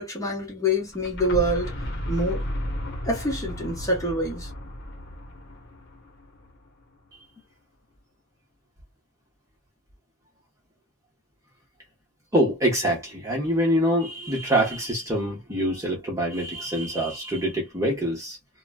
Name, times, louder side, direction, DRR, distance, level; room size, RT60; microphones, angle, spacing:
voice 1, 0.0-1.7 2.1-2.4 3.0-4.5, equal, 15° left, 1.1 m, -26 dB
sound 1, 0.9-6.7, equal, 50° left, 1.0 m, -33 dB
voice 2, 12.3-18.4, equal, 15° right, 1.0 m, -25 dB
3.0 x 2.2 x 2.2 m
head